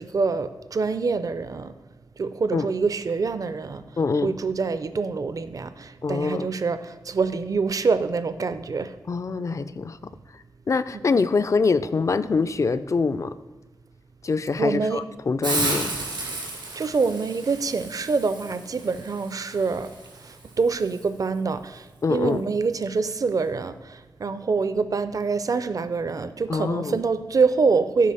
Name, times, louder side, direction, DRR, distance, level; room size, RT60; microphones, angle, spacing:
voice 1, 0.0-1.7 2.2-3.8 4.2-8.9 10.9-11.0 14.6-15.0 16.0-19.9 20.2-28.1, right 4 dB, 50° right, 12 dB, 0.5 m, -25 dB
voice 2, 4.0-4.3 6.0-6.5 9.1-10.0 10.7-13.4 14.2-15.9 22.0-22.4 26.5-27.0, left 4 dB, 45° left, 13 dB, 0.3 m, -24 dB
Hiss, 15.4-21.0, right 2 dB, 85° right, 3.0 m, -33 dB
8.4 x 4.6 x 5.6 m, 1.2 s
wide cardioid pair, 120°, 8 cm